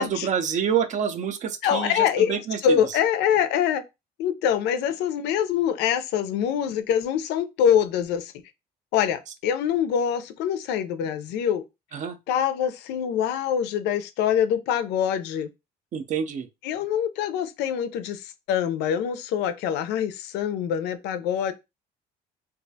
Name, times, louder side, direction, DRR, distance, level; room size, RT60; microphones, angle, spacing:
voice 1, 0.0-3.0 11.9-12.2 15.9-16.5, right 7 dB, 45° right, 0.4 m, -27 dB
voice 2, 1.6-3.8 4.2-8.3 8.9-11.6 12.3-15.5 16.6-21.5, left 9 dB, 85° left, 0.4 m, -24 dB
2.3 x 2.1 x 2.6 m
cardioid pair, 110°, 17 cm